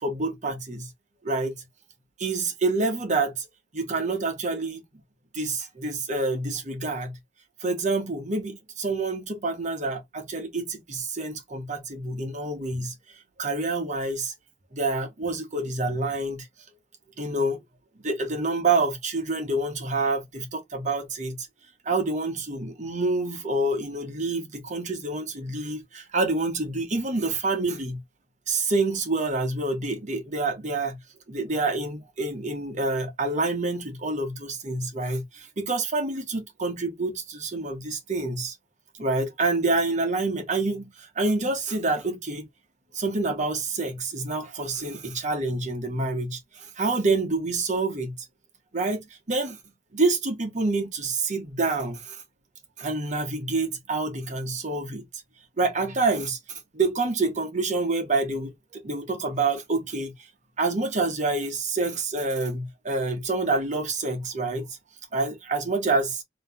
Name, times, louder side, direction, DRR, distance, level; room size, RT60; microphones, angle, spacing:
voice 1, 0.0-0.9 1.2-1.5 2.2-3.4 3.7-4.8 5.3-7.2 7.6-12.9 13.4-14.3 14.7-16.5 17.2-17.6 18.0-21.5 21.8-28.0 28.5-31.0 31.3-38.5 39.0-42.5 42.9-48.1 48.7-49.6 49.9-52.2 52.8-55.0 55.6-56.4 56.7-60.1 60.6-64.7 65.1-66.2, right 3 dB, 40° right, 1.1 m, -27 dB
3.3 x 2.8 x 3.5 m
head